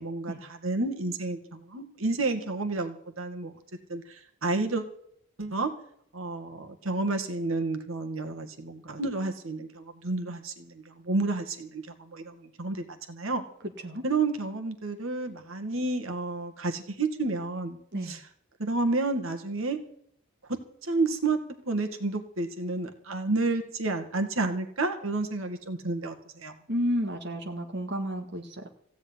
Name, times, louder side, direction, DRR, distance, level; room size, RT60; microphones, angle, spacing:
voice 1, 0.0-3.5 3.9-4.9 5.4-5.7 6.1-13.4 14.0-17.8 18.0-18.2 18.6-19.8 20.5-21.4 21.7-26.5, right 3 dB, 80° right, 6 dB, 2.0 m, -30 dB
voice 2, 26.7-28.7, equal, 55° right, 2 dB, 1.8 m, -31 dB
16.0 x 7.2 x 9.7 m, 0.67 s
head